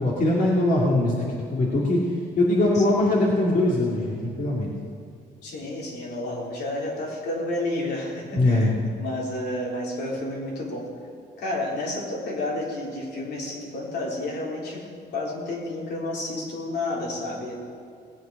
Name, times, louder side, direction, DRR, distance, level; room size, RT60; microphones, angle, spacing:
voice 1, 0.0-2.0 2.4-4.7 8.3-8.8, left 1 dB, 50° left, -4 dB, 2.4 m, -22 dB
voice 2, 5.4-10.9 11.4-14.8 15.1-17.5, left 2 dB, 75° left, -3 dB, 4.0 m, -31 dB
18.5 x 7.9 x 6.5 m, 2.3 s
cardioid pair, 95°, 18 cm